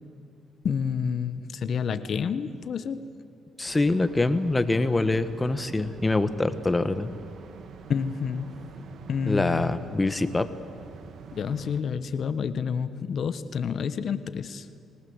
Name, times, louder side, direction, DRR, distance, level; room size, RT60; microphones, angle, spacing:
voice 1, 0.6-3.1 7.9-8.7 9.1-9.7 11.3-14.7, left 6 dB, 55° left, 12 dB, 1.2 m, -29 dB
voice 2, 3.6-7.1 9.3-10.5, left 2 dB, 20° left, 11 dB, 1.4 m, -24 dB
sound 1, 3.6-11.8, right 5 dB, 65° right, 1.6 m, -46 dB
26.0 x 19.0 x 8.1 m, 2.6 s
cardioid pair, 90°, 0 cm